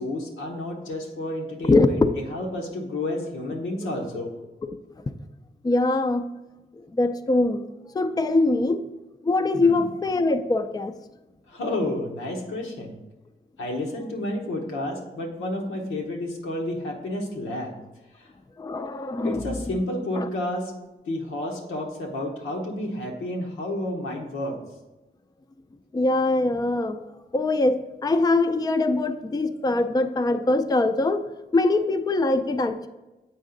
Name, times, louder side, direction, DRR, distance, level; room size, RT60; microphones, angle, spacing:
voice 1, 0.0-4.3 9.5-9.8 11.5-13.0 13.6-17.8 18.2-18.3 19.2-20.7 21.1-24.6, left 1 dB, 90° left, 0 dB, 1.0 m, -31 dB
voice 2, 1.6-2.2 5.6-6.3 6.9-7.6 7.9-8.8 9.2-11.0 18.6-19.6 20.2-20.3 25.9-27.0 27.3-31.3 31.5-32.9, left 2 dB, 20° left, 8 dB, 0.4 m, -22 dB
7.2 x 4.7 x 3.8 m, 1.1 s
supercardioid pair, 45°, 20 cm